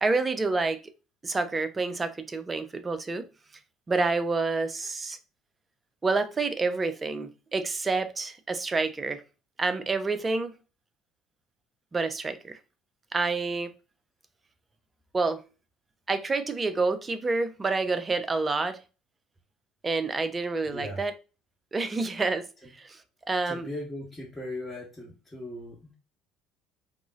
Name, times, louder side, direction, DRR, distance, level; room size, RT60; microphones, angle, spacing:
voice 1, 0.0-0.8 1.2-3.3 3.9-5.2 6.0-9.2 9.6-10.5 11.9-12.6 13.1-13.7 15.1-15.4 16.1-18.8 19.8-21.1 21.7-22.5 22.8-23.0 23.3-23.7, right 3 dB, 25° right, 0.4 m, -28 dB
voice 2, 20.6-21.0 23.4-25.9, left 1 dB, 5° left, 1.0 m, -38 dB
3.6 x 2.0 x 2.4 m
hypercardioid pair, 60°, 0 cm